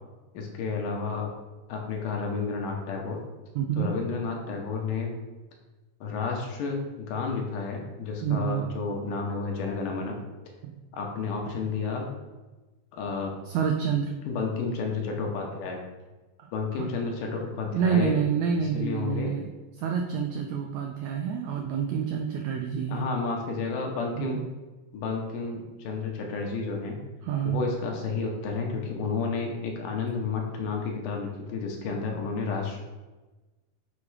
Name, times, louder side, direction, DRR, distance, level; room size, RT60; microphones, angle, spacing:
voice 1, 0.3-1.3 1.7-3.2 3.8-5.1 6.0-10.2 10.9-12.1 12.9-13.3 14.3-15.8 16.5-18.2 18.6-19.3 22.9-24.4 24.9-27.0 27.4-32.8, left 4 dB, 80° left, 1 dB, 2.4 m, -31 dB
voice 2, 3.5-3.9 8.2-8.6 10.6-10.7 13.5-14.1 16.4-16.8 17.7-19.5 19.8-23.0 24.2-24.4 27.2-27.6, right 7 dB, 85° right, 2 dB, 1.6 m, -28 dB
6.8 x 3.5 x 4.7 m, 1.2 s
omnidirectional pair, 3.8 m